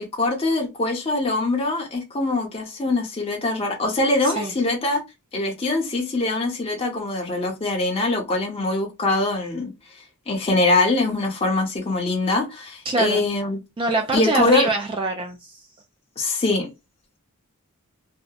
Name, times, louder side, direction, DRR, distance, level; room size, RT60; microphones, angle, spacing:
voice 1, 0.0-5.0 5.3-13.6 14.1-14.7 16.2-16.7, left 2 dB, 25° left, 0.6 m, -23 dB
voice 2, 4.2-4.5 12.9-13.2 13.8-15.7, right 2 dB, 25° right, 0.3 m, -24 dB
2.7 x 2.1 x 2.2 m
head